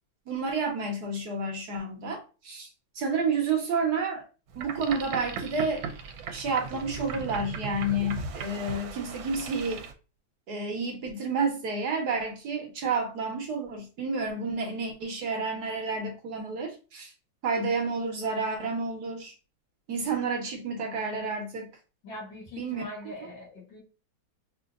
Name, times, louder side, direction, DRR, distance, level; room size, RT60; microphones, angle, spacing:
voice 1, 0.3-2.7 2.9-4.2 4.5-5.9 6.3-9.9 10.5-17.1 17.4-19.3 19.9-21.7 22.6-23.1, right 3 dB, 65° right, 1.2 m, -30 dB
Boat Water vehicle, 4.5-9.9, right 5 dB, 85° right, 1.4 m, -37 dB
voice 2, 22.0-23.8, left 1 dB, 75° left, 2.5 m, -42 dB
5.0 x 2.7 x 2.4 m
omnidirectional pair, 2.1 m